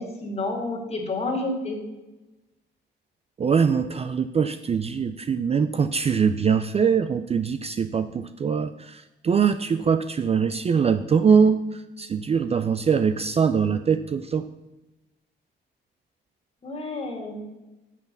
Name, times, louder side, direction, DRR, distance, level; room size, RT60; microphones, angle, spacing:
voice 1, 0.0-1.8 16.6-17.6, left 2 dB, 30° left, 2 dB, 2.2 m, -30 dB
voice 2, 3.4-14.5, right 6 dB, 30° right, 10 dB, 0.4 m, -22 dB
6.8 x 5.8 x 6.6 m, 1.0 s
cardioid pair, 90°, 20 cm